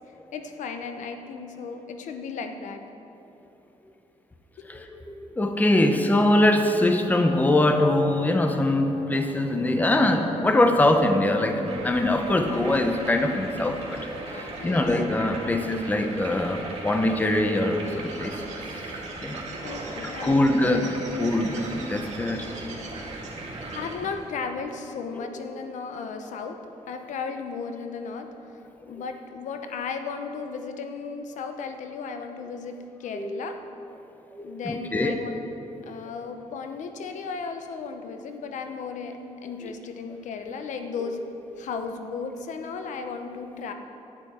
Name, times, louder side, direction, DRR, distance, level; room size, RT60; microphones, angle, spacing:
voice 1, 0.3-2.8 14.2-14.9 19.6-20.9 23.7-26.6 26.9-28.3 28.9-33.6 34.4-35.5 35.8-41.2 41.6-43.7, left 5 dB, 85° left, 6 dB, 0.8 m, -35 dB
voice 2, 4.7-14.0 14.4-18.3 19.2-19.4 20.2-22.5 25.2-25.3 33.1-33.3 34.4-35.1, left 1 dB, 15° left, 5 dB, 0.7 m, -23 dB
sound 1, 11.6-23.9, right 2 dB, 50° right, 2.1 m, -38 dB
Bird, 17.7-24.3, right 2 dB, 75° right, 1.8 m, -42 dB
11.5 x 10.0 x 4.3 m, 2.9 s
wide cardioid pair, 135°, 12 cm